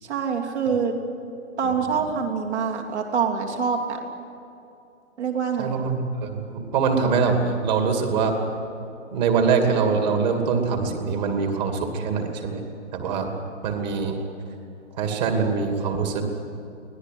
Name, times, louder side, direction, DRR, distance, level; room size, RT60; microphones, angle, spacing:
voice 1, 0.0-0.9 1.6-4.0 5.2-5.8, right 6 dB, 60° right, 1 dB, 3.3 m, -25 dB
voice 2, 5.6-8.3 9.1-12.6 12.9-13.3 13.6-14.2 14.9-16.2, right 5 dB, 35° right, 4 dB, 2.7 m, -23 dB
24.5 x 18.5 x 9.4 m, 2.7 s
hypercardioid pair, 160°, 38 cm